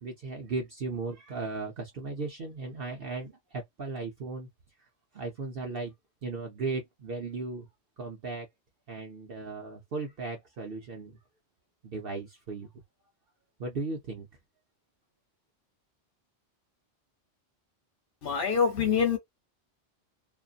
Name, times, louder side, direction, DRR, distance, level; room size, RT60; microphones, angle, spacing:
voice 1, 0.0-4.5 4.8-4.9 5.1-5.9 6.2-7.7 8.0-8.5 8.9-11.2 11.8-12.7 13.6-14.3, right 3 dB, 55° right, 0.9 m, -36 dB
voice 2, 18.2-19.2, left 6 dB, 55° left, 1.1 m, -25 dB
2.6 x 2.5 x 2.4 m
omnidirectional pair, 1.2 m